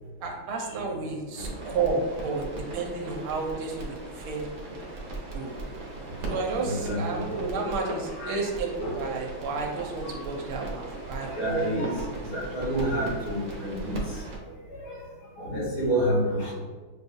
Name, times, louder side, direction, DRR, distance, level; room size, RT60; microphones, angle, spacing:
voice 1, 0.2-2.4 2.7-4.5 5.3-5.5 6.3-12.0, right 4 dB, 80° right, 1 dB, 1.5 m, -31 dB
sound 1, 1.4-14.4, right 2 dB, 60° right, 1.3 m, -38 dB
voice 2, 6.6-7.3 7.7-8.4 8.8-9.0 11.3-12.1 12.3-14.0 14.8-15.0 15.4-16.5, right 1 dB, 70° left, -7 dB, 2.5 m, -29 dB
6.7 x 2.3 x 2.6 m, 1.4 s
omnidirectional pair, 2.4 m